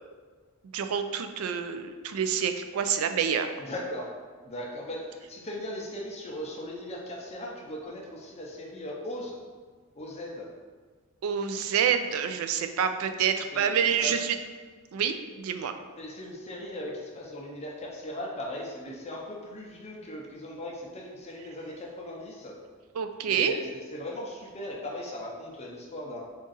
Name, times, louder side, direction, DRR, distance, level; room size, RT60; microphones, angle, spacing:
voice 1, 0.7-3.5 11.2-14.4 14.9-15.7 22.9-23.5, right 7 dB, 75° right, 8 dB, 0.3 m, -27 dB
voice 2, 3.6-4.1 4.4-9.4 9.9-10.5 13.5-14.2 16.0-22.5 23.3-26.2, left 1 dB, 30° left, -2 dB, 0.5 m, -38 dB
3.7 x 2.5 x 3.9 m, 1.5 s
head